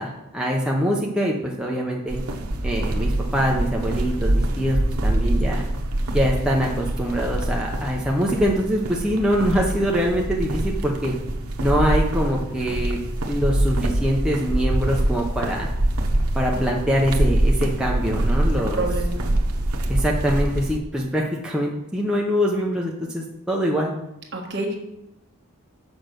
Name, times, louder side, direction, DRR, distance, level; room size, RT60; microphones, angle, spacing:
voice 1, 0.0-2.2 2.6-5.6 6.1-11.1 11.6-13.0 13.3-15.7 16.3-18.9 19.9-23.9, equal, 5° right, -3 dB, 0.8 m, -24 dB
sound 1, 2.1-20.8, right 1 dB, 85° right, 0.9 m, -24 dB
voice 2, 18.7-19.2 24.3-24.8, right 2 dB, 50° right, 0 dB, 1.5 m, -27 dB
6.2 x 5.1 x 6.7 m, 0.86 s
head